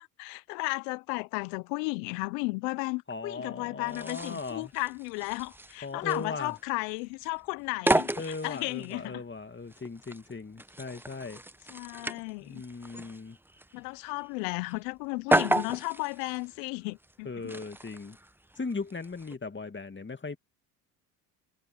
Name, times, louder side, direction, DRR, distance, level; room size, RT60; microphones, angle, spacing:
voice 1, 0.0-9.2 11.7-12.6 13.7-17.5, left 28 dB, 75° left, 1.2 m, -34 dB
voice 2, 3.1-4.7 5.8-6.5 8.2-11.4 12.4-13.4 17.2-18.2 18.6-20.4, left 4 dB, 20° left, 2.6 m, -38 dB
sound 1, 3.9-19.4, right 1 dB, 5° right, 1.1 m, -34 dB
hypercardioid pair, 60°, 50 cm